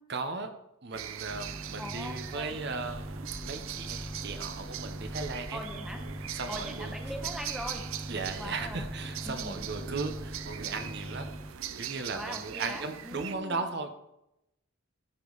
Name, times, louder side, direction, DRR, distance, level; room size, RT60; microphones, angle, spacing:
voice 1, 0.1-0.5 0.8-5.6 6.3-6.9 8.1-11.3 11.8-14.0, right 3 dB, 55° right, 7 dB, 0.8 m, -37 dB
sound 1, 0.9-13.3, right 10 dB, 75° right, 0.5 m, -41 dB
sound 2, 1.3-11.5, equal, 15° right, 0.5 m, -42 dB
voice 2, 1.8-2.6 5.5-6.0 6.5-7.8 8.4-8.8 9.2-9.6 12.1-13.6, equal, ahead, 3 dB, 0.9 m, -41 dB
sound 3, 2.8-10.5, left 1 dB, 80° left, 2.4 m, -48 dB
13.5 x 5.1 x 4.0 m, 0.85 s
head